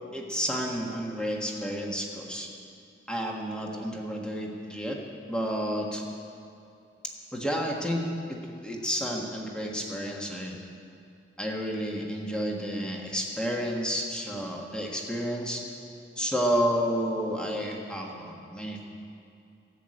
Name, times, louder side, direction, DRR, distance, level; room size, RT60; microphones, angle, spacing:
voice 1, 0.1-2.5 3.1-5.0 5.3-6.0 7.3-10.6 11.4-15.6 16.2-18.9, equal, 5° left, -1 dB, 1.5 m, -31 dB
13.5 x 8.1 x 8.8 m, 2.7 s
head